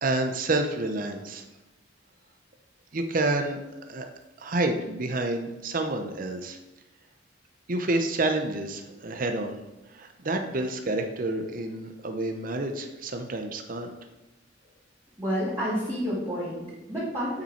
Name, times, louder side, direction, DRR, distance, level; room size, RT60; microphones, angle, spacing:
voice 1, 0.0-1.4 2.9-3.6 3.9-4.1 4.4-6.6 7.7-9.6 9.9-13.9, right 2 dB, 45° right, 5 dB, 0.7 m, -29 dB
voice 2, 15.2-17.4, equal, 20° right, -13 dB, 2.7 m, -29 dB
8.2 x 5.5 x 4.4 m, 1.0 s
head